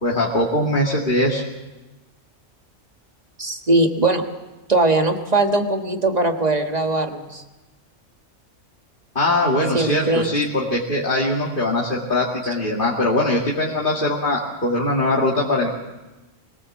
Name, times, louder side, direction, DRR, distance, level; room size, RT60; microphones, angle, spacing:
voice 1, 0.0-1.4 9.2-15.7, left 1 dB, 45° left, -4 dB, 2.3 m, -21 dB
voice 2, 3.4-4.2 4.7-7.4 9.7-10.3, right 2 dB, 35° right, 4 dB, 1.6 m, -20 dB
24.0 x 18.0 x 7.2 m, 1.1 s
omnidirectional pair, 1.3 m